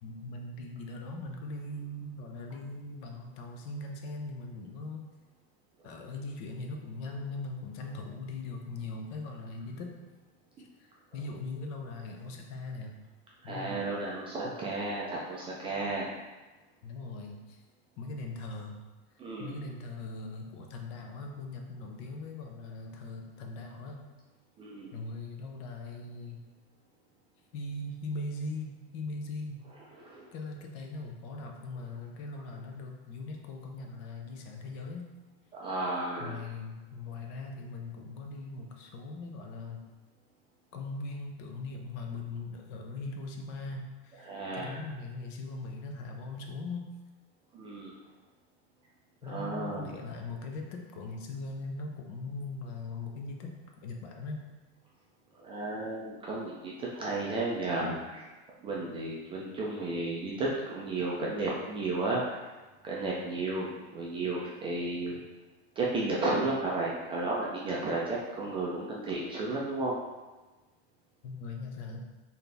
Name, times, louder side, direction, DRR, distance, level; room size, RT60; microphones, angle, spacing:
voice 1, 0.0-5.0 5.8-10.0 10.6-12.9 13.4-13.8 16.8-17.6 18.0-18.8 19.4-24.1 24.9-26.4 27.5-29.6 30.3-35.1 36.2-39.8 40.7-46.9 49.2-53.6 53.8-54.4 71.2-72.0, left 3 dB, 45° left, 2 dB, 0.6 m, -40 dB
voice 2, 13.4-16.1 19.2-19.6 24.6-24.9 30.0-30.3 35.5-36.4 44.3-44.7 47.5-47.9 49.2-49.9 55.4-58.3 58.6-62.4 62.8-65.2 65.8-70.0, right 2 dB, 15° right, -4 dB, 0.3 m, -33 dB
4.0 x 2.7 x 3.3 m, 1.2 s
supercardioid pair, 145°, 32 cm